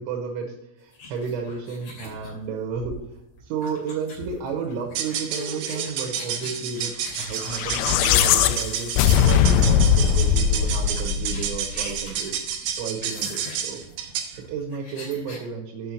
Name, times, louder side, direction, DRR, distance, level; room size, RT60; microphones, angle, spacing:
voice 1, 0.0-3.0 3.4-13.8 14.4-15.9, right 5 dB, 90° right, 1 dB, 3.6 m, -32 dB
sound 1, 0.9-9.0 9.7-9.9 10.2-10.3 10.6-15.5, left 2 dB, 40° left, 3.6 m, -41 dB
sound 2, 4.9-14.4, right 8 dB, 70° right, 2.5 m, -31 dB
sound 3, 7.4-11.8, left 8 dB, 90° left, 3.1 m, -20 dB
8.7 x 5.7 x 6.2 m, 0.86 s
omnidirectional pair, 5.3 m